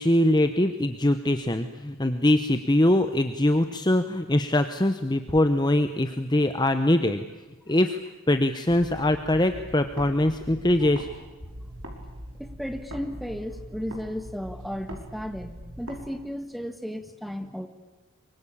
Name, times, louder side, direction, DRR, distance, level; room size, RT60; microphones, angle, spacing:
voice 1, 0.0-7.2 7.7-8.0 8.3-11.1, left 1 dB, 20° left, 8 dB, 0.9 m, -22 dB
sound 1, 8.7-11.1 11.4-16.0, equal, 70° right, 5.4 m, -42 dB
voice 2, 12.4-17.7, equal, ahead, 7 dB, 1.7 m, -34 dB
24.5 x 24.0 x 8.7 m, 1.1 s
head